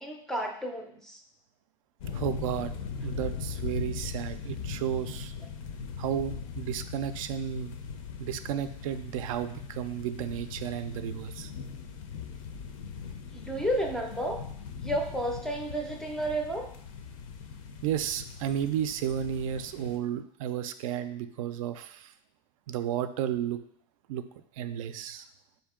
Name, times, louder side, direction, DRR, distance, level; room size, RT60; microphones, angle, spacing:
voice 1, 0.0-1.2 13.3-14.4 14.8-16.7, right 1 dB, 5° left, 2 dB, 0.4 m, -32 dB
sound 1, 2.0-20.0, left 6 dB, 75° left, 0.5 m, -40 dB
voice 2, 2.1-5.3 6.0-7.8 8.2-11.5 17.8-22.1 22.7-23.6 24.1-24.2 24.6-25.3, right 10 dB, 85° right, 11 dB, 0.4 m, -33 dB
4.5 x 2.7 x 3.6 m, 0.66 s
supercardioid pair, 155°, 17 cm